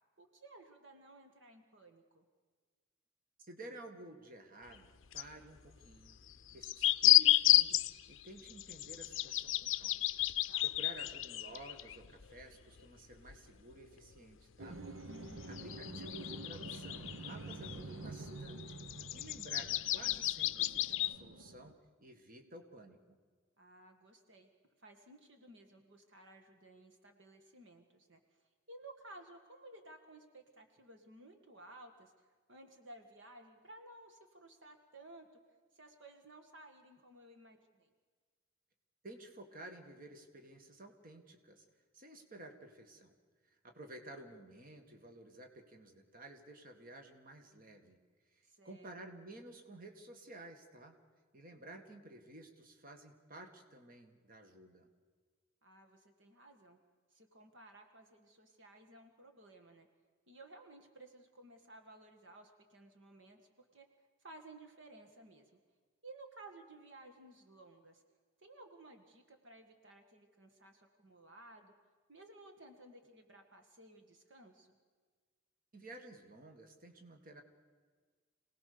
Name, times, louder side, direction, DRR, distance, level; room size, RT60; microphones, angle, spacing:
voice 1, 0.2-2.3 10.5-10.6 15.0-15.6 23.6-24.5 24.8-28.2 28.7-35.3 35.7-37.9 48.4-48.9 55.6-56.8 57.1-59.9 60.3-63.9 64.2-65.6 66.0-68.0 68.4-71.7 72.1-74.8, right 2 dB, 60° right, 5 dB, 1.8 m, -56 dB
voice 2, 3.4-6.2 6.5-7.8 8.1-10.1 10.4-14.8 15.5-21.7 22.0-23.2 39.0-41.6 41.9-43.1 43.4-48.0 48.3-51.0 51.3-54.9 75.7-77.4, right 2 dB, 45° right, 5 dB, 2.0 m, -53 dB
sound 1, 4.7-4.8 5.1-5.2 6.3-12.4 12.8-12.9 13.3-13.4 14.8-14.9 15.4-17.8 18.3-21.2, left 15 dB, 65° left, 0.6 m, -32 dB
sound 2, 14.6-21.7, right 2 dB, 85° right, 1.2 m, -48 dB
27.0 x 18.5 x 6.9 m, 1.5 s
head